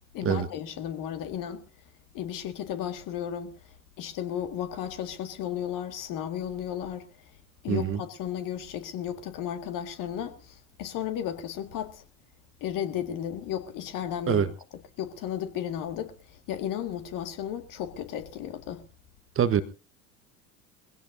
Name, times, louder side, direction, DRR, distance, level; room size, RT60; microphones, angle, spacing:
voice 1, 0.1-1.6 2.1-3.5 4.0-7.1 7.6-12.0 12.6-14.4 15.0-18.8, left 10 dB, 45° left, 2.0 m, -34 dB
voice 2, 7.7-8.0 14.3-14.5 19.3-19.6, right 9 dB, 30° right, 1.1 m, -24 dB
22.5 x 16.5 x 2.7 m
figure-of-eight pair, 70°, 43 cm